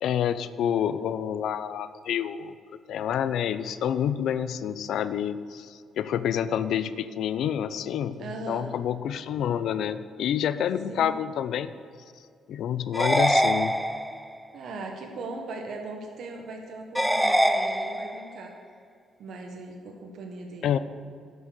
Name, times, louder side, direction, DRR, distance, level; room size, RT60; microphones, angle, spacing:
voice 1, 0.0-2.5 2.9-11.7 12.5-13.8 20.6-20.8, left 9 dB, 75° left, 13 dB, 0.5 m, -28 dB
voice 2, 8.2-8.7 10.9-11.2 14.5-18.5 19.2-20.8, right 2 dB, 70° right, 2 dB, 1.2 m, -39 dB
sound 1, 12.9-14.4 16.9-18.4, equal, ahead, 0.5 m, -24 dB
11.0 x 6.2 x 6.6 m, 2.2 s
cardioid pair, 90°, 0 cm